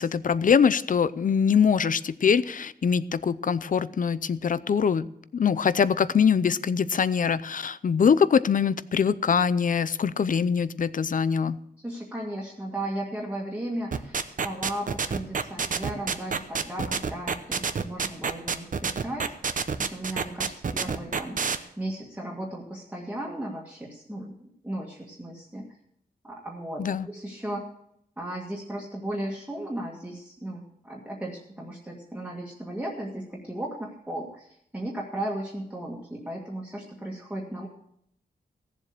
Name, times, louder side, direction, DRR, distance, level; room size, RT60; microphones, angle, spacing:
voice 1, 0.0-5.1 5.3-11.6 26.8-27.1, left 6 dB, 50° left, 17 dB, 0.6 m, -23 dB
voice 2, 11.8-25.7 26.2-27.6 28.2-37.7, right 1 dB, 10° right, -3 dB, 1.9 m, -36 dB
sound 1, 13.9-21.6, right 5 dB, 50° right, 0.9 m, -27 dB
16.5 x 7.5 x 6.7 m, 0.72 s
wide cardioid pair, 140°, 17 cm